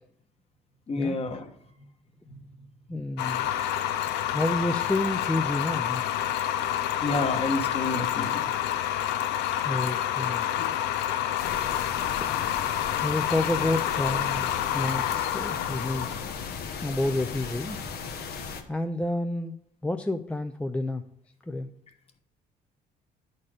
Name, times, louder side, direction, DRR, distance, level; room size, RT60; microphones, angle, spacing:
voice 1, 0.9-1.5 1.8-1.9 2.3-2.7 3.4-3.9 7.0-8.5, left 3 dB, 35° left, 5 dB, 1.3 m, -31 dB
voice 2, 2.9-3.5 4.3-6.0 9.6-10.8 12.2-12.3 13.0-16.2 16.8-17.9 18.7-19.5 19.8-21.0 21.5-21.7, left 2 dB, 5° left, 7 dB, 0.4 m, -29 dB
sound 1, 3.2-18.1, left 11 dB, 90° left, 0.5 m, -29 dB
sound 2, 11.4-18.6, left 5 dB, 70° left, 1.2 m, -37 dB
11.0 x 4.3 x 4.9 m, 0.75 s
cardioid pair, 110°, 17 cm